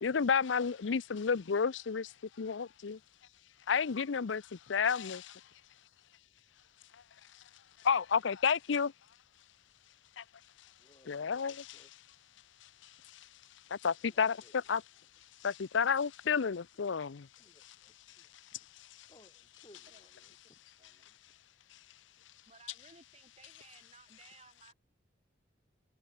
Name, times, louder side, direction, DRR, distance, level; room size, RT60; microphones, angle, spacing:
voice 1, 0.0-3.0 3.7-5.4 7.8-8.9 10.2-10.3 11.1-11.8 13.1-13.3 13.7-14.8 15.4-17.3, left 6 dB, 80° left, 0.6 m, -31 dB
voice 2, 10.8-11.9 14.1-14.6 17.4-17.9 18.5-18.6 19.1-20.6, left 1 dB, 25° left, 4.6 m, -63 dB
voice 3, 20.8-21.2 22.5-24.7, right 4 dB, 35° right, 4.4 m, -60 dB
head